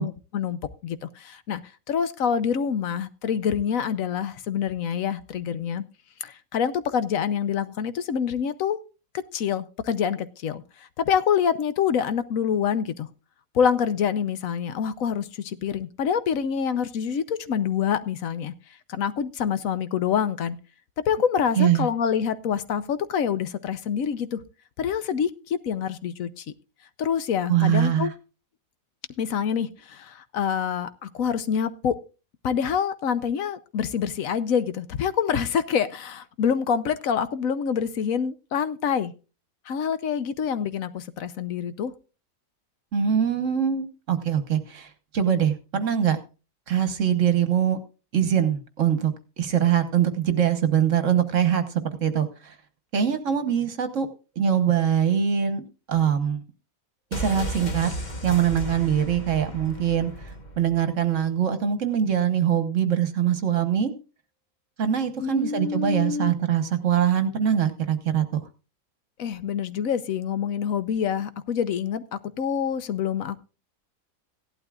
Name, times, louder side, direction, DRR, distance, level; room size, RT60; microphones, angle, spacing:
voice 1, 0.0-1.6 1.9-5.8 6.2-8.8 9.3-10.6 11.0-13.1 13.5-18.5 18.9-20.6 21.1-24.4 24.8-26.4 27.0-28.1 29.2-32.0 32.4-39.1 39.7-41.9 65.2-66.3 69.2-73.4, left 7 dB, 75° left, 13 dB, 1.1 m, -26 dB
voice 2, 21.5-21.9 27.5-28.1 42.9-46.2 46.7-47.8 48.1-51.6 52.0-52.6 52.9-54.1 54.4-56.4 57.1-57.9 58.2-60.3 60.6-63.9 64.8-68.5, right 9 dB, 65° right, 9 dB, 1.5 m, -23 dB
sound 1, 57.1-60.9 61.1-61.2, equal, 35° left, 1.4 m, -34 dB
16.5 x 12.0 x 2.4 m, 0.33 s
omnidirectional pair, 1.5 m